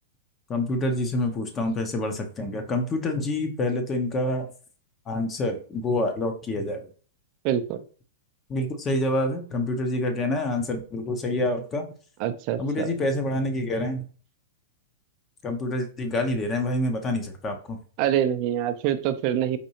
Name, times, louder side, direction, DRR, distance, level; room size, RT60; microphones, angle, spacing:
voice 1, 0.5-4.5 5.1-6.9 8.5-11.9 12.6-14.0 15.4-17.8, left 1 dB, 25° left, 5 dB, 0.7 m, -27 dB
voice 2, 7.4-7.8 12.2-12.9 18.0-19.6, right 10 dB, 45° right, 11 dB, 0.4 m, -25 dB
4.2 x 2.6 x 2.8 m, 0.41 s
hypercardioid pair, 115°, 0 cm